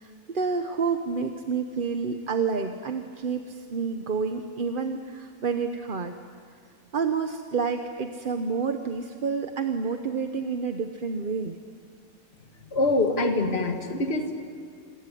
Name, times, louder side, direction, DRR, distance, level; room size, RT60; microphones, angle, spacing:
voice 1, 0.0-6.1 6.9-11.6, right 5 dB, 40° right, 6 dB, 1.1 m, -29 dB
voice 2, 12.7-14.4, left 2 dB, 45° left, 4 dB, 2.3 m, -25 dB
26.5 x 21.0 x 9.9 m, 2.1 s
omnidirectional pair, 1.5 m